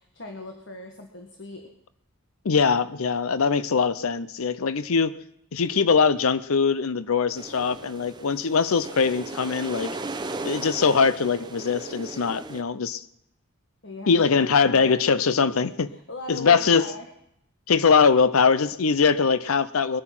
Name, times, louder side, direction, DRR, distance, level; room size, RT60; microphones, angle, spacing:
voice 1, 0.0-1.7 13.8-14.9 15.5-17.1, left 2 dB, 55° left, 3 dB, 1.6 m, -39 dB
voice 2, 2.4-5.2 5.5-10.0 10.4-13.0 14.1-15.9 16.3-16.9 17.7-20.0, left 5 dB, 85° left, 15 dB, 0.6 m, -22 dB
sound 1, 7.3-12.6, right 2 dB, 20° right, 0.8 m, -37 dB
21.5 x 9.9 x 6.0 m, 0.76 s
head